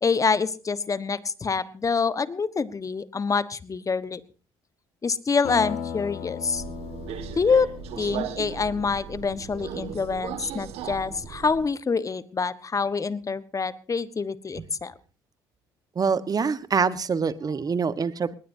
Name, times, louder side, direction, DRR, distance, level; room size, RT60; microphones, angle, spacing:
voice 1, 0.0-4.2 5.0-6.6 7.4-7.7 8.0-14.9, left 5 dB, 30° left, 15 dB, 1.3 m, -26 dB
sound 1, 5.4-9.7, left 8 dB, 70° left, 3.5 m, -37 dB
Subway metro underground, 6.5-11.7, right 9 dB, 70° right, 1.9 m, -37 dB
voice 2, 15.9-18.3, right 5 dB, 35° right, 15 dB, 1.3 m, -25 dB
20.0 x 19.5 x 2.8 m, 0.35 s
hypercardioid pair, 65°, 11 cm